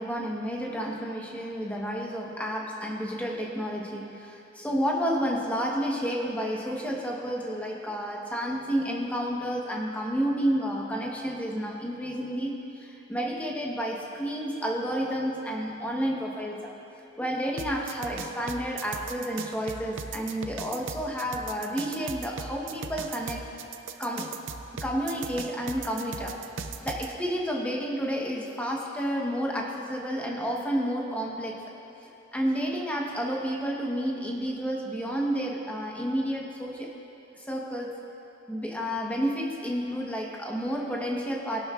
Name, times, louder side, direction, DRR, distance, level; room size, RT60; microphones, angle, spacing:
voice 1, 0.0-16.7 17.2-23.5 24.0-24.4 24.8-26.4 26.8-31.6 32.3-36.9 37.3-38.0 38.5-41.7, equal, 5° left, -2 dB, 1.1 m, -30 dB
sound 1, 17.6-27.1, right 5 dB, 70° right, 0.6 m, -37 dB
21.0 x 11.5 x 2.5 m, 3.0 s
head